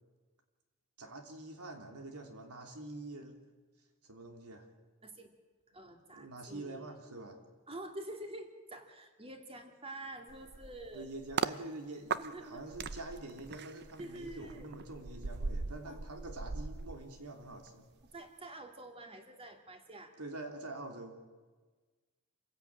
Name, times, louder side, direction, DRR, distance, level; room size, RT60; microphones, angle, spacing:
voice 1, 1.0-3.4 4.0-4.7 6.1-7.4 10.9-17.9 20.2-21.2, right 2 dB, 75° right, 4 dB, 3.2 m, -46 dB
voice 2, 5.7-6.9 7.7-11.1 12.3-12.6 14.0-14.7 15.8-16.0 18.0-20.1, right 1 dB, 25° right, 5 dB, 2.5 m, -47 dB
sound 1, 10.3-11.6 12.1-17.7 18.0-18.3, right 5 dB, 50° right, 0.7 m, -40 dB
27.5 x 16.0 x 8.8 m, 1.4 s
head